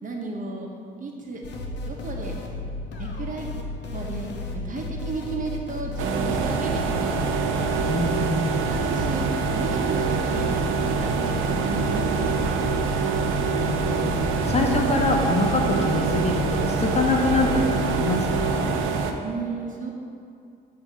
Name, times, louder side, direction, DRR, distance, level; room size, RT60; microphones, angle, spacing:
voice 1, 0.0-0.7 1.0-1.4 1.8-2.4 2.9-3.5 3.9-4.3 4.5-7.1 8.7-9.3 9.5-12.4 19.2-19.9, right 3 dB, 40° right, 0 dB, 1.0 m, -33 dB
sound 1, 1.4-18.6, left 2 dB, 60° left, 0.8 m, -33 dB
sound 2, 6.0-19.1, right 5 dB, 90° right, 0.5 m, -25 dB
voice 2, 7.9-8.7 13.1-18.7, left 2 dB, 35° left, 1 dB, 0.8 m, -25 dB
7.5 x 2.8 x 6.0 m, 2.4 s
cardioid pair, 90°, 20 cm